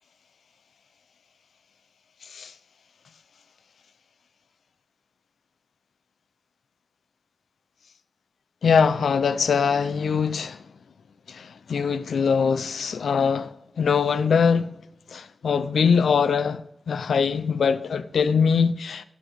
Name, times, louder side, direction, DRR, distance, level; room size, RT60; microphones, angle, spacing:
voice 1, 8.6-10.6 11.3-13.5 13.8-14.8 15.1-19.1, left 6 dB, 90° left, 0.6 m, -22 dB
15.5 x 6.1 x 4.8 m
cardioid pair, 45°, 0 cm